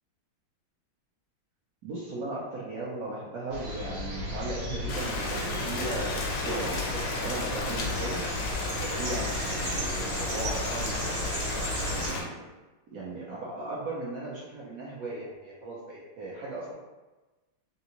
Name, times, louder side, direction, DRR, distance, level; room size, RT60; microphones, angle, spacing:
voice 1, 1.8-8.5 8.8-11.5 11.9-12.5 12.9-16.7, right 2 dB, 85° right, -6 dB, 0.8 m, -37 dB
sound 1, 3.5-12.1, left 1 dB, 65° right, 1.5 m, -34 dB
Rain, 4.9-12.2, left 2 dB, 75° left, 0.9 m, -33 dB
3.6 x 2.4 x 2.9 m, 1.1 s
omnidirectional pair, 2.4 m